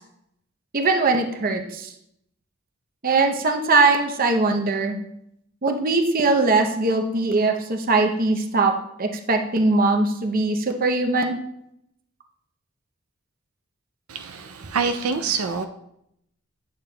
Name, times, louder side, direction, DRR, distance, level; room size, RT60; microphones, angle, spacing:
voice 1, 0.7-1.9 3.0-5.0 5.6-8.7 9.0-11.4, right 3 dB, 40° right, 3 dB, 0.7 m, -21 dB
voice 2, 14.1-15.7, right 5 dB, 85° right, 6 dB, 0.5 m, -26 dB
8.8 x 6.6 x 2.3 m, 0.77 s
head